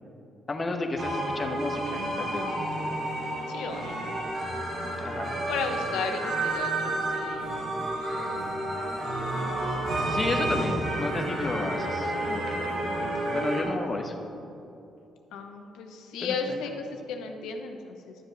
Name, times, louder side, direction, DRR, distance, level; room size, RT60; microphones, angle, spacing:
voice 1, 0.5-2.7 5.0-5.4 10.1-14.1 16.2-16.4, left 2 dB, 30° left, 3 dB, 1.0 m, -32 dB
sound 1, 1.0-13.6, right 1 dB, 70° right, 2.4 m, -30 dB
voice 2, 3.5-4.0 5.5-7.6 15.3-18.1, left 5 dB, 90° left, 4 dB, 0.9 m, -34 dB
12.0 x 7.2 x 4.0 m, 2.8 s
cardioid pair, 90°, 0 cm